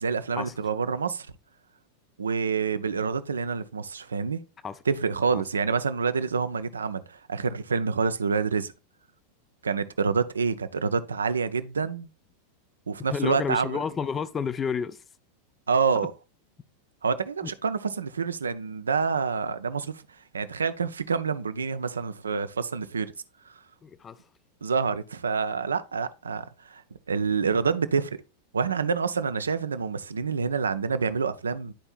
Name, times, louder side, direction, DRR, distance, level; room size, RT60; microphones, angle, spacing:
voice 1, 0.0-1.3 2.2-4.4 4.9-8.7 9.6-12.1 12.9-13.8 15.7-16.1 17.0-19.9 20.3-23.1 24.6-26.8 27.1-28.2 28.5-31.7, right 5 dB, 70° right, 0.5 m, -27 dB
voice 2, 13.1-15.0 17.4-17.5 23.8-24.2, left 6 dB, 20° left, 0.4 m, -30 dB
11.5 x 4.3 x 2.4 m
figure-of-eight pair, 90°, 0 cm